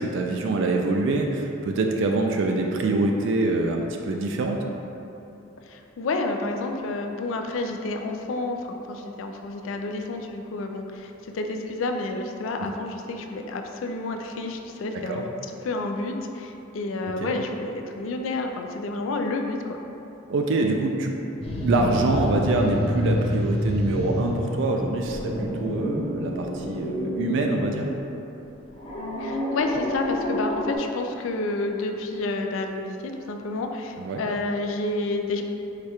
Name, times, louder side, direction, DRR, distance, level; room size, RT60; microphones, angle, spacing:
voice 1, 0.0-4.7 12.6-12.7 14.9-15.2 17.2-17.3 20.3-21.2 21.6-27.9 34.0-34.2, right 2 dB, 65° right, 2 dB, 0.3 m, -25 dB
voice 2, 5.6-15.3 15.6-19.8 29.2-35.4, left 2 dB, 70° left, 4 dB, 0.4 m, -30 dB
sound 1, 21.4-24.5 24.9-27.9 28.8-30.8, left 1 dB, 30° left, 0.7 m, -28 dB
4.8 x 2.3 x 4.2 m, 3.0 s
head